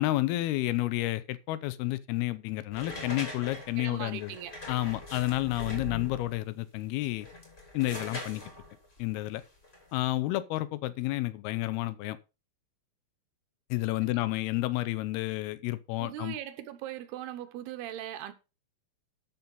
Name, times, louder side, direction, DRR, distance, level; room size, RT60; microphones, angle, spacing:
voice 1, 0.0-4.4 4.7-7.3 7.7-8.4 9.0-9.4 9.9-12.2 13.7-16.4, left 17 dB, 85° left, 2.6 m, -30 dB
sound 1, 2.7-6.4 7.1-10.0, left 2 dB, 15° left, 2.8 m, -42 dB
voice 2, 3.8-4.5 14.0-14.2 16.0-18.3, right 12 dB, 85° right, 3.1 m, -40 dB
12.5 x 5.6 x 5.4 m
omnidirectional pair, 4.5 m